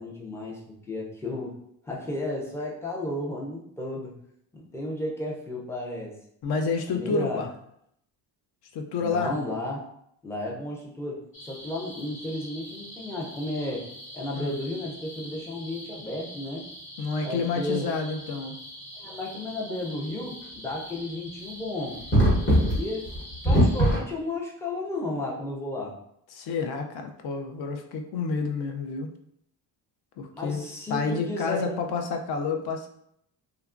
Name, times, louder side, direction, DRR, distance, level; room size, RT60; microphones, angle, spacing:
voice 1, 0.0-1.5 1.8-4.1 4.5-6.2 6.9-7.4 9.0-9.8 10.2-13.9 14.1-16.7 17.2-17.9 19.0-22.0 22.7-23.1 23.4-26.0 30.3-31.8, left 1 dB, 5° left, -3 dB, 0.4 m, -33 dB
voice 2, 6.4-7.5 8.7-9.3 14.4-14.6 17.0-18.5 26.3-29.1 30.2-30.6 30.9-32.9, left 4 dB, 60° left, 5 dB, 0.5 m, -29 dB
sound 1, 11.3-24.0, equal, 30° left, 1.0 m, -29 dB
2.9 x 2.3 x 2.4 m, 0.72 s
cardioid pair, 140°, 43 cm